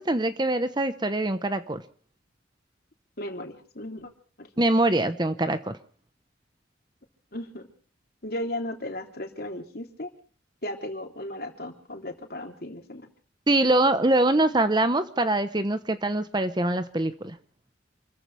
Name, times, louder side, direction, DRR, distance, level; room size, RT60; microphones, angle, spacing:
voice 1, 0.0-1.8 4.6-5.8 13.5-17.4, right 2 dB, 25° right, 11 dB, 1.0 m, -24 dB
voice 2, 3.2-4.1 4.4-4.5 7.3-7.6 8.2-10.1 10.6-13.1, left 1 dB, 55° left, 4 dB, 3.4 m, -35 dB
28.5 x 15.0 x 3.4 m, 0.43 s
head